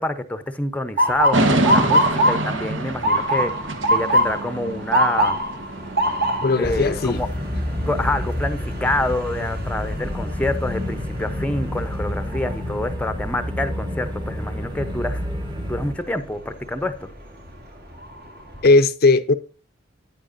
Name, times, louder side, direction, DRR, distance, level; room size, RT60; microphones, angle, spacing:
voice 1, 0.0-3.5 3.9-5.4 6.6-7.3 7.9-15.2 15.7-17.1, left 1 dB, 10° left, 0.7 m, -27 dB
Motor vehicle (road) / Siren, 1.0-12.9 13.3-13.8 14.5-14.8 16.7-17.0 17.5-17.6 18.0-18.7, equal, 60° right, 2.3 m, -24 dB
sound 1, 1.3-6.7, right 2 dB, 80° right, 1.1 m, -26 dB
voice 2, 6.4-7.2 18.6-19.3, left 3 dB, 55° left, 0.5 m, -17 dB
sound 2, 6.6-15.9, left 1 dB, 25° right, 1.2 m, -29 dB
9.7 x 8.7 x 2.6 m
head